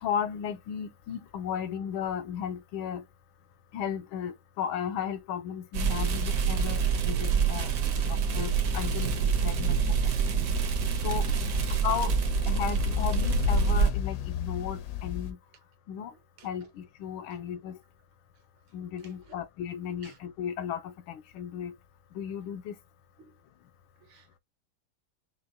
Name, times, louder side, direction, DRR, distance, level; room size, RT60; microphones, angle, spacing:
voice 1, 0.0-3.0 3.7-7.7 8.1-10.0 11.0-11.3 11.8-12.1 12.5-15.4 15.9-16.1 16.4-17.8 18.7-21.7 22.1-22.7, left 8 dB, 85° left, 1.4 m, -35 dB
sound 1, 5.7-13.9, right 6 dB, 60° right, 1.0 m, -27 dB
sound 2, 8.2-15.3, left 10 dB, 70° left, 1.1 m, -33 dB
voice 2, 11.3-11.7 12.7-12.8 16.4-16.5 17.3-17.4 19.3-19.4 20.0-20.2 23.2-23.4 24.0-24.4, right 7 dB, 75° right, 1.8 m, -53 dB
6.3 x 2.1 x 2.7 m
omnidirectional pair, 2.3 m